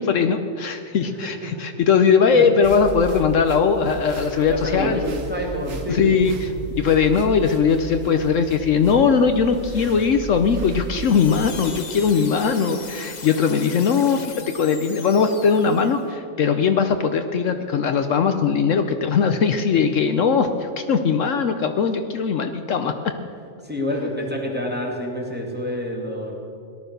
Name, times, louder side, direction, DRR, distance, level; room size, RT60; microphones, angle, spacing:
voice 1, 0.0-5.0 5.9-22.9, left 6 dB, 70° left, 7 dB, 1.0 m, -20 dB
voice 2, 1.0-1.5 2.3-2.5 4.5-6.5 23.6-26.4, equal, 5° right, -2 dB, 2.4 m, -28 dB
sound 1, 2.6-11.6, right 4 dB, 70° right, 1.7 m, -35 dB
sound 2, 10.9-16.1, left 5 dB, 35° left, 0.9 m, -39 dB
18.0 x 11.5 x 6.7 m, 2.6 s
omnidirectional pair, 1.4 m